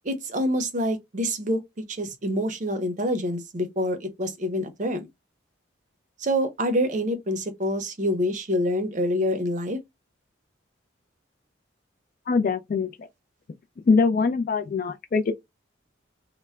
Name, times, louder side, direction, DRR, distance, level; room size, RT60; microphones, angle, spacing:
voice 1, 0.0-1.6 1.9-5.1 6.2-9.8, equal, 40° right, 0.5 m, -26 dB
voice 2, 12.3-13.1 13.9-15.3, left 4 dB, 45° left, 0.3 m, -23 dB
2.1 x 2.0 x 3.4 m
head